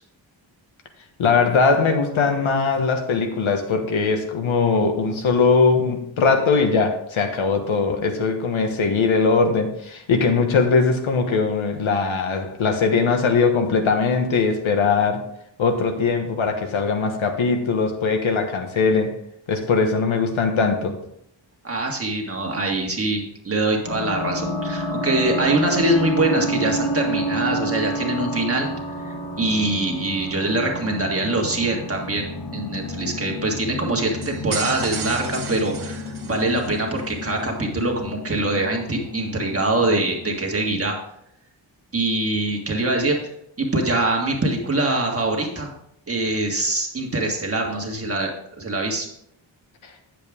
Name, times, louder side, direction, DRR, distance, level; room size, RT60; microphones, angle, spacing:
voice 1, 1.2-15.2 15.6-19.2 19.5-21.0 49.8-49.9, left 4 dB, 90° left, 4 dB, 1.4 m, -20 dB
voice 2, 21.6-28.7 29.0-41.0 41.9-43.2 43.6-45.7 46.1-48.3 48.6-49.1, right 2 dB, 30° right, 0 dB, 1.7 m, -23 dB
sound 1, 23.8-40.3, equal, 60° left, 1.8 m, -30 dB
sound 2, 34.2-36.8, right 6 dB, 55° right, 1.2 m, -33 dB
9.1 x 7.6 x 3.6 m, 0.75 s
wide cardioid pair, 145°, 46 cm